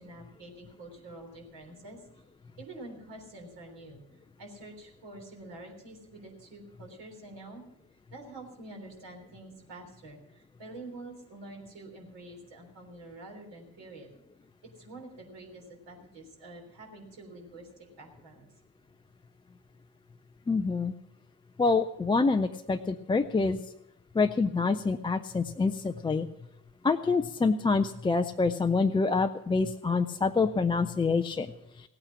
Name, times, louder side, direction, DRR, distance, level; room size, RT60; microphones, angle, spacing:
voice 1, 0.0-2.0 2.6-4.0 4.4-7.6 8.1-14.1 14.8-17.7 18.0-18.5, right 2 dB, 60° right, 1 dB, 3.5 m, -47 dB
voice 2, 20.5-20.9 21.6-23.6 24.1-26.3 26.8-31.5, left 4 dB, 10° left, 6 dB, 0.4 m, -26 dB
16.5 x 8.9 x 7.3 m, 0.84 s
figure-of-eight pair, 45°, 49 cm